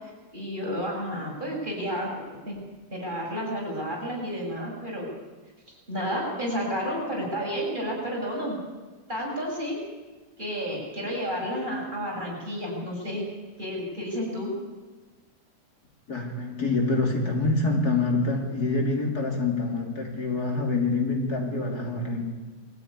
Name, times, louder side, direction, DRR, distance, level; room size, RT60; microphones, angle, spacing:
voice 1, 0.3-2.1 2.5-2.6 2.9-5.1 5.9-8.6 9.1-9.8 10.4-13.3 13.6-14.5, equal, 30° right, -3 dB, 7.0 m, -31 dB
voice 2, 16.1-22.2, left 3 dB, 65° left, 1 dB, 3.6 m, -26 dB
22.0 x 14.0 x 9.8 m, 1.3 s
omnidirectional pair, 1.8 m